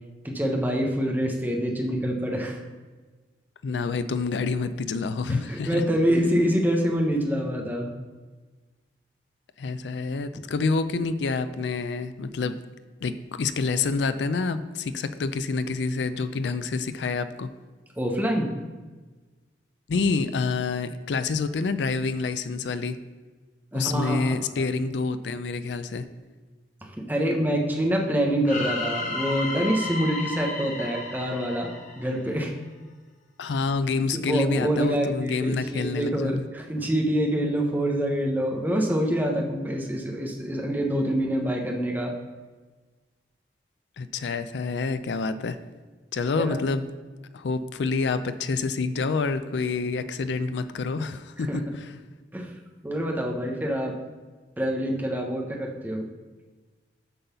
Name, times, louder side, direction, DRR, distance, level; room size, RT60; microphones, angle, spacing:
voice 1, 0.2-2.6 5.3-7.9 10.3-10.4 18.0-18.5 23.7-24.7 26.8-31.7 31.9-32.5 34.3-42.1 46.4-46.6 51.5-51.7 52.3-52.5 52.8-54.0 54.6-56.1, equal, 10° right, 0 dB, 0.9 m, -26 dB
voice 2, 3.6-5.8 9.6-12.6 13.0-17.5 19.9-23.0 23.7-26.1 33.4-36.5 44.0-45.6 46.1-46.9 47.3-51.9, left 4 dB, 85° left, 11 dB, 0.4 m, -27 dB
sound 1, 28.5-32.5, left 2 dB, 45° left, 1.0 m, -33 dB
8.1 x 3.9 x 6.7 m, 1.3 s
head